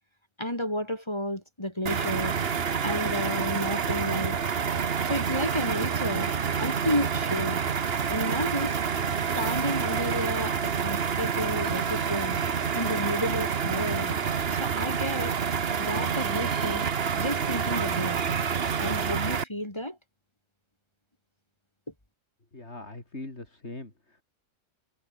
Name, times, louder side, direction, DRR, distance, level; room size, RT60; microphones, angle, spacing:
voice 1, 0.4-2.4 2.8-4.4 5.1-7.6 8.1-8.8 9.4-12.4 12.7-14.2 14.6-15.3 15.8-16.9 17.2-18.4 18.8-20.0, left 1 dB, 20° left, 3.8 m, -31 dB
sound 1, 1.9-19.4, right 6 dB, 50° right, 1.3 m, -28 dB
voice 2, 22.5-24.2, left 2 dB, 60° left, 4.9 m, -41 dB
omnidirectional pair, 1.3 m